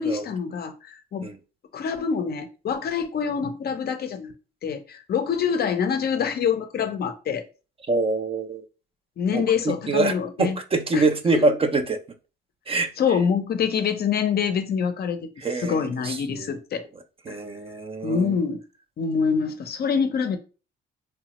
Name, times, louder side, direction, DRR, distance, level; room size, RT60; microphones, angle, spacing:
voice 1, 0.0-1.3 1.7-4.3 4.6-7.4 9.2-10.6 10.9-11.1 11.3-11.4 13.0-15.3 15.6-16.9 17.3-17.4 18.0-18.6 19.0-20.4, left 6 dB, 55° left, 0.5 m, -25 dB
voice 2, 7.9-8.7 9.3-12.0 12.7-12.9 15.4-16.5 17.3-18.4, right 3 dB, 30° right, 0.4 m, -25 dB
3.1 x 2.0 x 2.9 m
cardioid pair, 90°, 20 cm